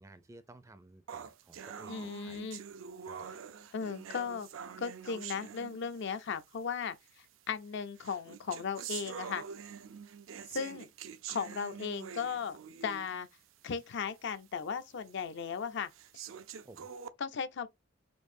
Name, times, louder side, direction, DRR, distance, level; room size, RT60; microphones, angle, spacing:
voice 1, 0.0-2.4 3.0-3.3 16.6-16.9, right 2 dB, 15° right, 0.4 m, -55 dB
sound 1, 1.1-6.2 7.1-7.2 8.0-13.2 13.7-13.8 14.3-14.4 15.1-15.2 15.9-17.1, right 7 dB, 75° right, 0.4 m, -45 dB
voice 2, 1.9-2.6 3.7-4.5 4.8-7.0 7.5-9.4 10.5-10.9 11.3-13.3 13.6-15.9 17.2-17.7, left 6 dB, 60° left, 0.5 m, -36 dB
4.4 x 2.6 x 2.6 m
head